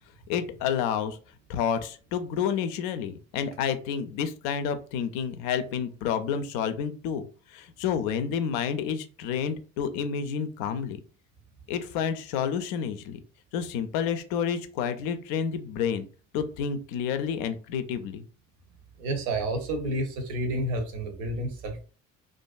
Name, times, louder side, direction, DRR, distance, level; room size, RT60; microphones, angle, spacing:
voice 1, 0.3-1.2 1.5-11.0 11.7-13.2 13.5-16.1 16.3-18.2, left 7 dB, 60° left, 9 dB, 0.5 m, -29 dB
voice 2, 19.0-21.8, right 1 dB, 65° right, 5 dB, 0.8 m, -30 dB
2.5 x 2.2 x 2.3 m, 0.37 s
figure-of-eight pair, 50°, 38 cm